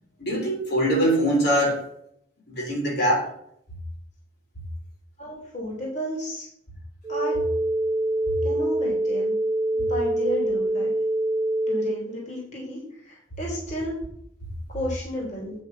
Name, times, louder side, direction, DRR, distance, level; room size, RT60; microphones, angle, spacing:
voice 1, 0.2-1.8 2.5-3.3, equal, 55° left, -2 dB, 3.6 m, -22 dB
voice 2, 5.2-6.5 7.1-7.4 8.4-9.4 9.7-10.9 11.7-12.8 13.0-13.9 14.7-15.5, equal, 40° left, -3 dB, 3.2 m, -32 dB
sound 1, 7.0-12.0, right 1 dB, 15° right, 0.9 m, -25 dB
9.5 x 6.3 x 5.5 m, 0.69 s
head